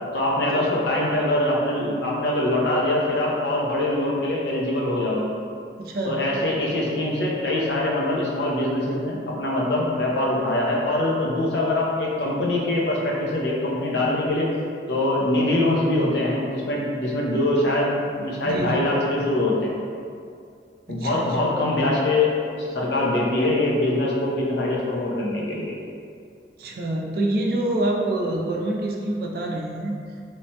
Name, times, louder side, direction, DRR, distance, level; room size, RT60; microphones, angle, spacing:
voice 1, 0.1-5.4 6.1-14.5 14.9-19.7 20.9-22.3 22.6-25.7, left 1 dB, 80° left, -4 dB, 0.6 m, -23 dB
voice 2, 5.8-6.2 18.4-18.9 20.9-21.5 26.6-30.0, right 1 dB, 55° right, -1 dB, 0.3 m, -26 dB
3.1 x 2.1 x 2.7 m, 2.3 s
head